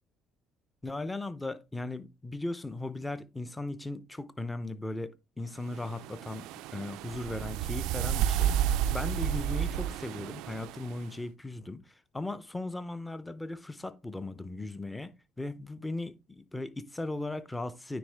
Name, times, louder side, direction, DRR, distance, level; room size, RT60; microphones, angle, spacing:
voice 1, 0.8-5.1 5.4-6.5 6.7-11.8 12.1-15.1 15.4-18.0, left 2 dB, 10° left, 0.7 m, -37 dB
sound 1, 5.7-11.0, right 10 dB, 80° right, 0.3 m, -31 dB
9.5 x 3.7 x 3.4 m
cardioid pair, 100°, 0 cm